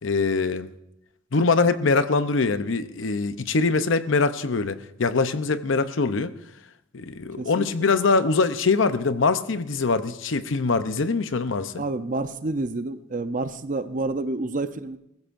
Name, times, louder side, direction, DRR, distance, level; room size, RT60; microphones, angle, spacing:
voice 1, 0.0-0.7 1.3-6.3 6.9-11.8, left 4 dB, 70° left, 0.7 m, -23 dB
voice 2, 7.4-7.7 11.8-15.0, right 2 dB, 40° right, 0.7 m, -29 dB
20.5 x 15.5 x 2.6 m
head